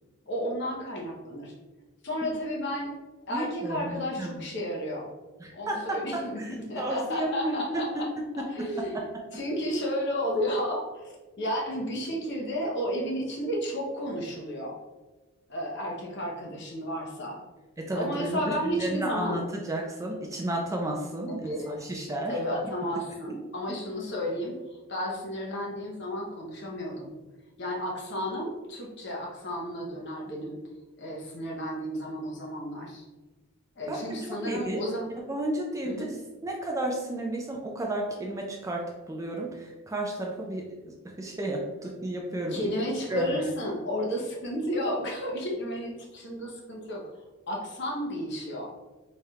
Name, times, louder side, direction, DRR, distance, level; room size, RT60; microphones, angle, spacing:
voice 1, 0.3-1.5 2.0-2.9 3.3-5.1 5.5-8.1 8.5-9.0 9.3-14.8 15.5-17.4 17.9-19.4 21.3-21.8 22.3-24.6 24.9-27.1 27.6-30.6 31.0-33.1 33.8-35.0 35.8-36.1 42.5-47.0 47.5-48.7, equal, 50° left, -2 dB, 0.8 m, -32 dB
voice 2, 3.3-4.4 5.4-6.0 6.4-7.8 8.6-8.7 8.9-9.0 17.8-22.4 33.9-34.0 34.4-34.8 35.3-36.2 36.4-42.7 43.1-43.5, right 1 dB, 15° right, 0 dB, 0.3 m, -32 dB
4.1 x 3.3 x 2.3 m, 1.2 s
head